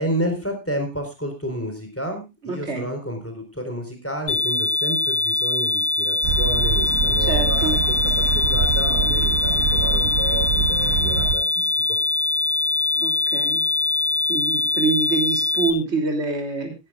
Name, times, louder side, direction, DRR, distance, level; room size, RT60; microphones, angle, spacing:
voice 1, 0.0-11.7, equal, 10° left, 4 dB, 4.1 m, -30 dB
voice 2, 2.4-2.9 7.3-7.8 13.0-13.6 14.3-16.7, right 4 dB, 45° right, 4 dB, 3.4 m, -25 dB
sound 1, 4.3-15.7, left 3 dB, 90° left, 2.7 m, -22 dB
sound 2, 6.2-11.3, right 6 dB, 65° right, 1.3 m, -24 dB
19.0 x 12.0 x 2.4 m, 0.26 s
omnidirectional pair, 1.6 m